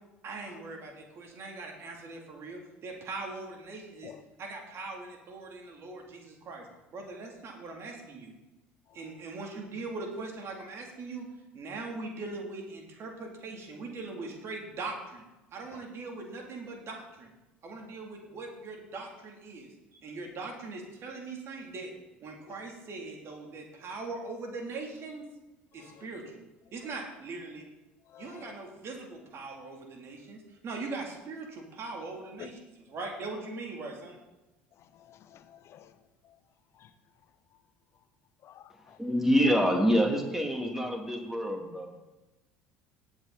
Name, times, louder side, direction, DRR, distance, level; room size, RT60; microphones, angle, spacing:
voice 1, 0.2-4.1 4.4-8.3 8.9-11.3 11.5-15.2 15.5-17.3 17.6-21.9 22.2-25.3 25.7-26.3 26.7-27.7 28.2-32.6 32.9-34.2, right 3 dB, 45° right, 1 dB, 3.3 m, -41 dB
voice 2, 8.9-9.2 15.7-15.8 17.7-17.9 22.5-22.6 25.8-26.1 26.9-27.0 28.1-28.6 32.4-32.5 34.7-36.4 36.7-36.9 37.5-37.6 38.4-39.0, left 11 dB, 50° left, 12 dB, 1.0 m, -52 dB
voice 3, 39.0-41.9, equal, 5° right, 2 dB, 2.8 m, -26 dB
17.5 x 8.2 x 4.3 m, 1.0 s
hypercardioid pair, 65°, 6 cm